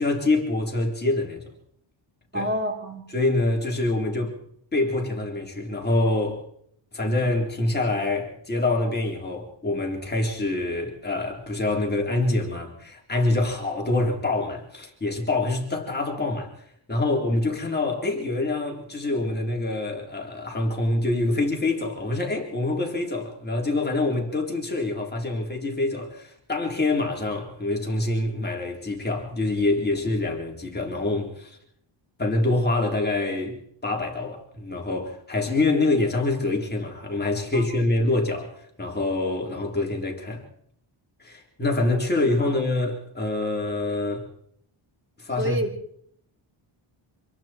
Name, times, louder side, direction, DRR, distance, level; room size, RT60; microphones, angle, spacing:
voice 1, 0.0-1.5 2.3-2.5 3.1-4.4 4.7-6.4 6.9-16.5 16.9-31.6 32.2-33.6 33.8-38.5 38.8-40.4 41.2-44.3 45.2-45.6, left 2 dB, 20° left, 3.9 m, -25 dB
voice 2, 2.3-3.1 37.5-37.6 42.4-42.5 45.4-45.7, equal, 25° right, 3.5 m, -28 dB
27.0 x 22.0 x 4.5 m
cardioid pair, 145°, 48 cm